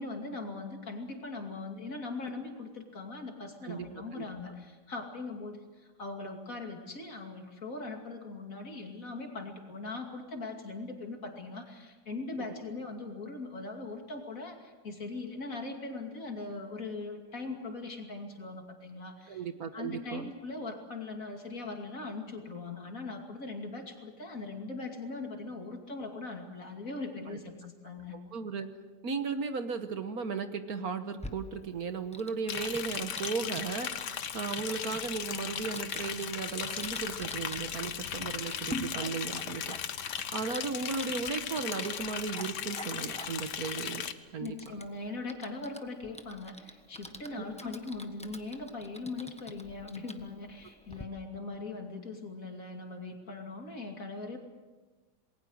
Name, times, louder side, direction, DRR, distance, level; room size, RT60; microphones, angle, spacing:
voice 1, 0.0-19.4 19.7-28.2 44.4-54.4, left 3 dB, 50° left, 3 dB, 3.0 m, -40 dB
voice 2, 19.3-20.3 27.3-27.4 28.1-28.7 29.0-39.8 40.3-44.1 44.3-44.6, right 5 dB, 60° right, 9 dB, 1.6 m, -36 dB
Typing, 31.2-51.0, left 1 dB, 5° left, 1.1 m, -48 dB
Liquid, 32.5-44.1, left 8 dB, 80° left, 1.7 m, -37 dB
28.0 x 21.0 x 6.5 m, 1.3 s
omnidirectional pair, 1.8 m